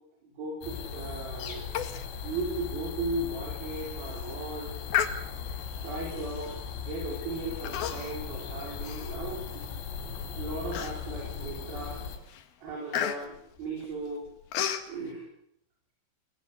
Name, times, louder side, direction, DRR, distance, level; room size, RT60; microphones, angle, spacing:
voice 1, 0.2-1.6 2.2-4.8 5.8-9.6 10.4-12.0 12.6-14.3 14.9-15.3, right 2 dB, 50° right, -1 dB, 6.3 m, -36 dB
sound 1, 0.6-12.2, left 6 dB, 80° left, 6.2 m, -38 dB
Human voice, 1.8-2.1 2.4-2.5 3.0-3.1 3.7-3.9 4.9-5.6 6.4-6.6 7.6-8.3 8.6-9.7 10.1-10.2 10.7-11.3 11.8-12.0 12.3-14.9, left 10 dB, 60° left, 2.9 m, -33 dB
27.0 x 19.0 x 8.4 m, 0.74 s
omnidirectional pair, 5.7 m